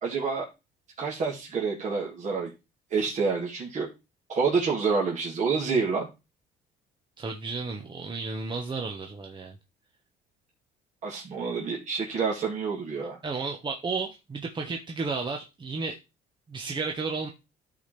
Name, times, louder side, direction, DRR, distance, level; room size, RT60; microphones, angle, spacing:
voice 1, 0.0-0.4 1.0-2.5 2.9-3.9 4.3-6.1 11.0-13.2, right 5 dB, 45° right, -4 dB, 2.3 m, -28 dB
voice 2, 7.2-9.6 13.2-16.0 16.5-17.3, right 4 dB, 25° right, 2 dB, 1.1 m, -33 dB
13.0 x 4.3 x 3.3 m, 0.26 s
cardioid pair, 110°, 17 cm